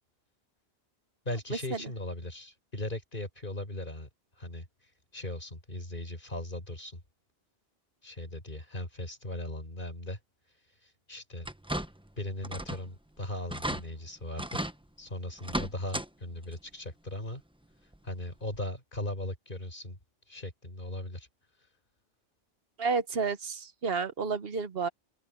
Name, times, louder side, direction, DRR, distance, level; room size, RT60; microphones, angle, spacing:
voice 1, 1.2-4.1 4.4-4.7 5.1-7.0 8.0-10.2 10.8-11.5 12.2-14.7 15.0-17.4 18.0-20.0 20.3-21.3, left 1 dB, 55° left, 4.5 m, -38 dB
sound 1, 11.4-12.1 12.4-12.9 13.2-13.3 13.5-13.8 14.4-14.8 15.4-16.1 16.4-16.5 17.9-18.0 18.5-18.6, right 1 dB, 5° right, 0.9 m, -35 dB
voice 2, 22.8-24.9, right 5 dB, 70° right, 1.2 m, -30 dB
open air
omnidirectional pair, 1.0 m